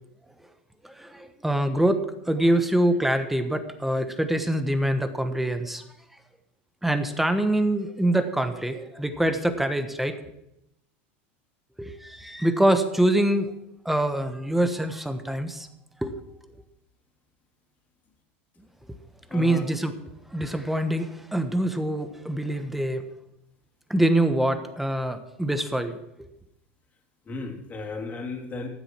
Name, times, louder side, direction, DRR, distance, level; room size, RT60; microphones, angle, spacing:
voice 1, 0.8-5.8 6.8-10.2 11.8-13.5 13.8-15.7 16.0-16.1 19.3-19.9 20.3-23.1 23.9-26.3, right 1 dB, 5° right, 8 dB, 1.2 m, -25 dB
voice 2, 19.3-19.7 27.3-28.7, left 3 dB, 25° left, 2 dB, 3.0 m, -35 dB
14.5 x 7.9 x 6.0 m, 0.83 s
supercardioid pair, 125°, 6 cm